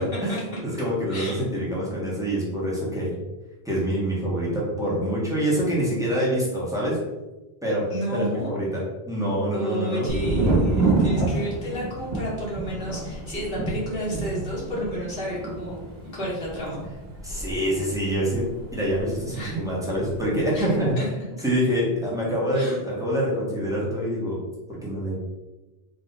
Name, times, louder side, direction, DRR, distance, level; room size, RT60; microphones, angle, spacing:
voice 1, 0.0-0.3 0.6-3.1 3.6-7.0 7.6-7.8 8.1-10.1 17.2-18.4 18.7-20.9 21.4-24.4 24.8-25.2, equal, 5° right, -6 dB, 1.3 m, -25 dB
voice 2, 1.1-1.4 7.9-8.5 9.5-16.8 19.3-19.6 20.5-21.1 22.6-22.8, equal, 65° left, -6 dB, 1.7 m, -31 dB
Thunder, 10.1-19.7 20.0-20.7, right 2 dB, 75° right, 1.3 m, -28 dB
3.8 x 3.1 x 4.0 m, 1.1 s
omnidirectional pair, 1.0 m